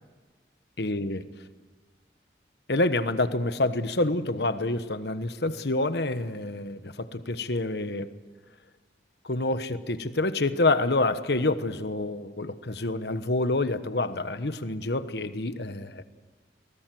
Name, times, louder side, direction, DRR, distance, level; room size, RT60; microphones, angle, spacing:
voice 1, 0.8-1.2 2.7-8.1 9.2-16.0, left 2 dB, 70° left, 11 dB, 1.2 m, -27 dB
23.0 x 20.0 x 7.8 m, 1.4 s
head